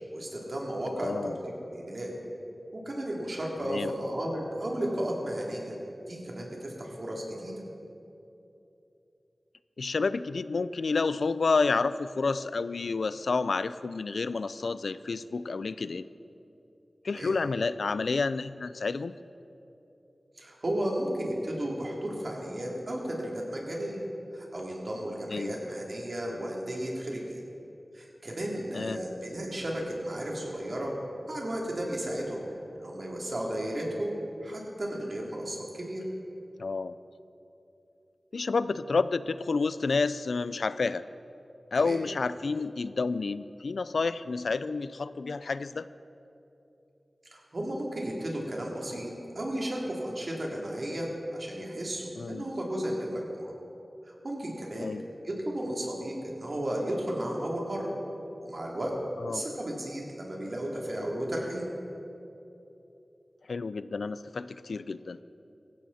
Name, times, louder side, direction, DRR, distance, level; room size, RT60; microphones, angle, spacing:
voice 1, 0.1-1.4 1.7-2.1 2.7-5.7 6.1-7.5 17.0-17.3 20.4-24.0 24.3-27.4 27.9-30.9 31.3-32.4 32.7-34.1 34.4-36.0 41.8-42.0 47.3-53.5 54.0-54.9 55.2-57.9 58.4-58.9 59.3-61.6, right 1 dB, 60° right, -2 dB, 3.2 m, -34 dB
voice 2, 1.0-1.4 3.6-3.9 9.8-16.1 17.0-19.2 25.3-25.6 28.7-29.0 36.6-36.9 38.3-41.0 41.7-45.9 52.2-52.5 54.8-55.0 59.2-59.4 63.5-65.2, left 4 dB, 85° left, 15 dB, 0.4 m, -30 dB
18.0 x 15.5 x 4.3 m, 2.9 s
wide cardioid pair, 50°, 0 cm